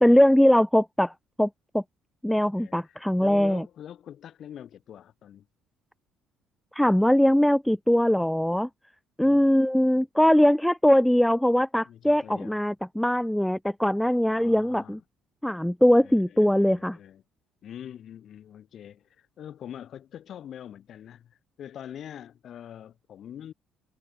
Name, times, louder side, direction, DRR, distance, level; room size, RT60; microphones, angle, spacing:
voice 1, 0.0-1.1 1.4-1.5 1.7-1.8 2.2-3.6 6.7-8.7 9.2-15.0 15.4-17.0, equal, 5° left, 0.3 m, -21 dB
voice 2, 2.5-5.5 9.2-9.4 11.8-12.6 14.3-15.0 16.0-17.2 17.6-23.5, left 10 dB, 50° left, 2.4 m, -44 dB
figure-of-eight pair, 50°, 0 cm